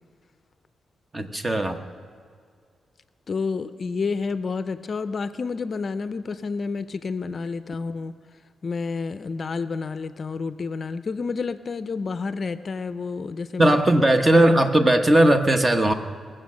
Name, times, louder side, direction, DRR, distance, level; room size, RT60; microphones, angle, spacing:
voice 1, 1.1-1.8 13.6-15.9, right 1 dB, 25° right, 7 dB, 1.0 m, -18 dB
voice 2, 3.3-8.1 8.6-13.8, left 4 dB, 45° left, 12 dB, 0.5 m, -29 dB
20.0 x 7.6 x 6.3 m, 2.1 s
cardioid pair, 95°, 0 cm